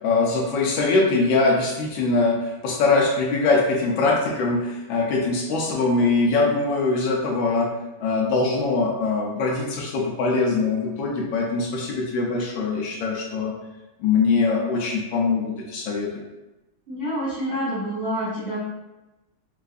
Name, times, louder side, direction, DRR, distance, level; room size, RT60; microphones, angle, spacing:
voice 1, 0.0-7.7 8.0-13.5 14.0-16.2, left 3 dB, 75° left, -2 dB, 1.3 m, -22 dB
voice 2, 16.9-18.6, equal, 50° right, -11 dB, 0.7 m, -27 dB
4.5 x 2.5 x 2.4 m, 1.0 s
omnidirectional pair, 2.3 m